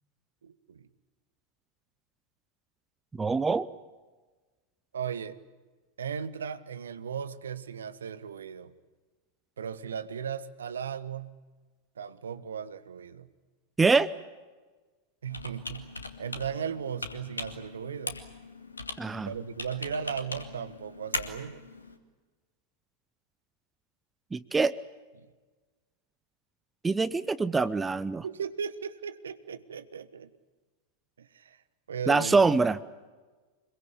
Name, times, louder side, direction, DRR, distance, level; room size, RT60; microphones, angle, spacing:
voice 1, 0.4-0.9 4.9-5.4 6.0-8.7 9.6-11.3 12.0-13.3 15.2-18.2 19.2-21.6 25.2-25.3 28.2-30.3 31.2-31.6 31.9-32.4, right 7 dB, 65° right, 14 dB, 1.3 m, -37 dB
voice 2, 3.2-3.7 13.8-14.1 19.0-19.3 24.3-24.7 26.8-28.2 32.1-32.8, right 4 dB, 10° right, 17 dB, 0.7 m, -24 dB
Computer keyboard, 15.3-22.0, left 3 dB, 80° left, 2.2 m, -40 dB
26.0 x 22.5 x 8.5 m, 1.3 s
figure-of-eight pair, 90°, 0 cm